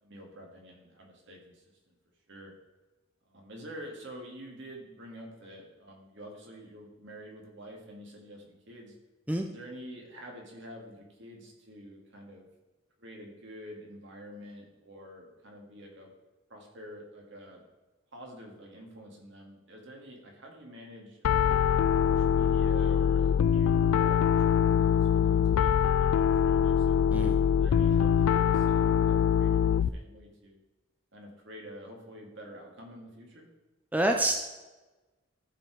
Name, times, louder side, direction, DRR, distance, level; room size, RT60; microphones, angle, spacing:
voice 1, 0.0-1.9 2.3-2.5 3.2-9.0 9.5-12.5 13.0-16.1 16.5-17.6 18.1-21.5 22.1-27.1 27.6-30.6 31.1-33.5, equal, 60° right, 0 dB, 2.1 m, -48 dB
Piano, 21.2-29.9, left 8 dB, 85° left, 0.3 m, -24 dB
voice 2, 33.9-34.4, right 1 dB, 5° right, 4 dB, 0.5 m, -27 dB
14.0 x 4.9 x 4.8 m, 1.1 s
head